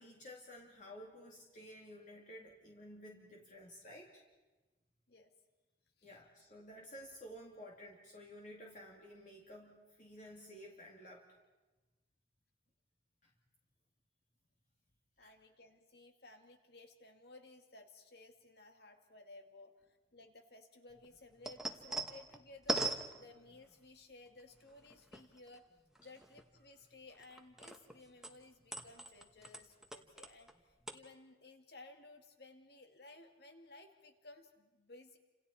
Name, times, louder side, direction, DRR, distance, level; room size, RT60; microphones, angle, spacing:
voice 1, 0.0-4.2 6.0-11.3 15.2-15.3, equal, 45° left, -2 dB, 2.4 m, -53 dB
voice 2, 15.2-25.6 26.0-35.2, left 2 dB, 60° left, 5 dB, 2.2 m, -58 dB
sound 1, 20.9-23.8 24.5-25.6 25.9-28.0 28.2-30.6 30.8-30.9, right 2 dB, 5° right, 1.1 m, -41 dB
30.0 x 27.0 x 4.3 m, 1.2 s
head